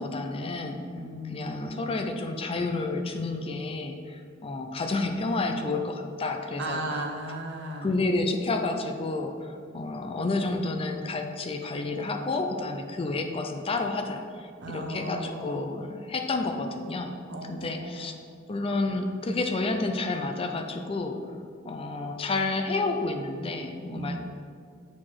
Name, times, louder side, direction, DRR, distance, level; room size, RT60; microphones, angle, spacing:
voice 1, 0.0-0.8 1.3-6.8 7.8-17.2 17.5-18.2 18.5-21.2 21.6-24.2, left 3 dB, 30° left, 4 dB, 0.4 m, -30 dB
voice 2, 0.9-1.7 6.6-8.0 14.6-15.7 17.3-18.1 23.9-24.2, right 1 dB, 60° right, 2 dB, 0.9 m, -36 dB
7.6 x 4.2 x 4.6 m, 2.2 s
head